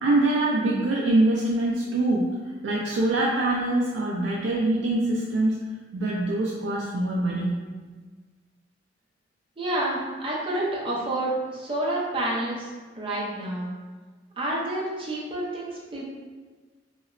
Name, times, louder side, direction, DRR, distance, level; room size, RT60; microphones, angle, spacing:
voice 1, 0.0-2.3 2.6-5.6 5.9-7.6, right 2 dB, 85° right, -4 dB, 0.3 m, -24 dB
voice 2, 9.6-12.7 13.0-13.7 14.4-16.1, right 1 dB, 30° right, -5 dB, 0.5 m, -29 dB
2.8 x 2.0 x 2.4 m, 1.4 s
head